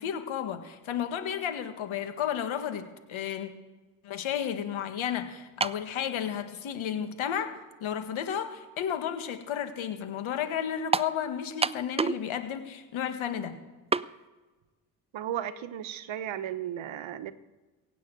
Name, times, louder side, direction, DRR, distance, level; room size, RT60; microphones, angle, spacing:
voice 1, 0.0-3.5 4.0-13.6, left 9 dB, 75° left, 8 dB, 1.7 m, -33 dB
sound 1, 5.6-5.9 6.8-6.9 10.9-11.2 11.6-12.3 12.5-12.6 13.9-14.1, right 4 dB, 15° right, 0.4 m, -27 dB
voice 2, 15.1-17.3, right 10 dB, 70° right, 13 dB, 1.0 m, -35 dB
16.5 x 7.0 x 9.1 m, 1.3 s
supercardioid pair, 50°, 48 cm